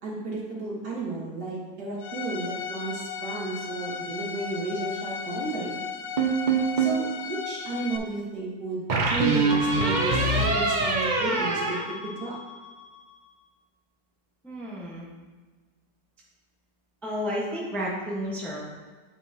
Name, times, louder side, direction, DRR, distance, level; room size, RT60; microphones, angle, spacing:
voice 1, 0.0-5.8 6.8-12.4, right 3 dB, 60° right, -4 dB, 2.1 m, -33 dB
Bowed string instrument, 2.0-8.0, left 6 dB, 75° left, 1.3 m, -36 dB
sound 1, 6.2-7.1 8.9-12.7, right 3 dB, 80° right, 0.4 m, -24 dB
voice 2, 14.4-15.1 17.0-18.7, equal, ahead, -5 dB, 1.0 m, -32 dB
9.0 x 5.4 x 2.9 m, 1.3 s
omnidirectional pair, 2.0 m